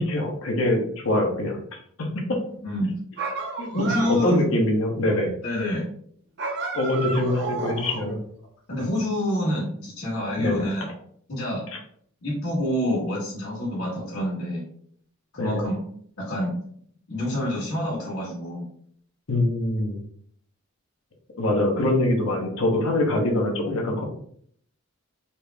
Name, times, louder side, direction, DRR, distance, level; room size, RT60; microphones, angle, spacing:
voice 1, 0.0-1.6 2.0-2.1 3.6-3.9 4.2-5.3 6.7-8.2 10.4-10.6 15.4-15.6 19.3-20.0 21.4-24.0, left 1 dB, 70° left, 2 dB, 0.9 m, -23 dB
voice 2, 2.6-3.0 3.7-4.3 5.4-5.9 8.7-10.9 11.3-11.6 12.2-14.6 15.3-15.8 16.2-16.6 17.1-18.7, left 1 dB, 85° left, -8 dB, 1.5 m, -27 dB
sound 1, 3.2-4.5 6.4-8.2, right 4 dB, 50° right, 0.8 m, -32 dB
4.2 x 2.0 x 3.3 m, 0.63 s
head